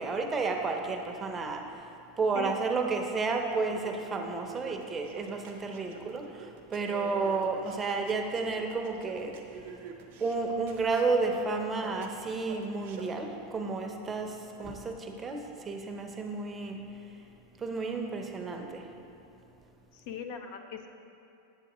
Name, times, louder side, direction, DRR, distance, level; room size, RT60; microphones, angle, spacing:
voice 1, 0.0-1.6 2.2-9.4 10.2-16.9 17.6-18.8, right 4 dB, 20° right, 3 dB, 0.6 m, -31 dB
voice 2, 2.3-2.9 19.9-20.9, left 6 dB, 60° left, 6 dB, 0.5 m, -40 dB
sound 1, 3.6-13.2, right 7 dB, 70° right, 0.8 m, -47 dB
8.1 x 7.0 x 3.0 m, 2.7 s
supercardioid pair, 120°, 0 cm